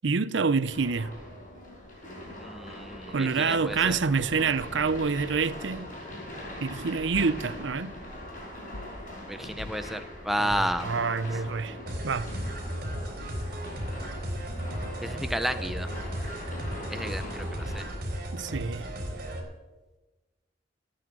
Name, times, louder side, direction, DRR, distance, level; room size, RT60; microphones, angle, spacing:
voice 1, 0.0-1.1 3.1-5.9 6.6-7.9 10.4-11.8 12.0-12.3 18.3-18.9, right 5 dB, 80° right, 0.6 m, -27 dB
sound 1, 0.7-17.9, left 1 dB, 45° left, 6.0 m, -41 dB
voice 2, 2.4-4.0 9.3-10.9 15.0-15.9 16.9-17.8, equal, ahead, 0.6 m, -32 dB
sound 2, 7.1-7.4 8.7-9.0 9.6-9.8 10.5-10.8, left 2 dB, 90° left, 1.3 m, -42 dB
sound 3, 11.9-19.4, equal, 55° right, 4.0 m, -35 dB
16.0 x 8.7 x 7.6 m
head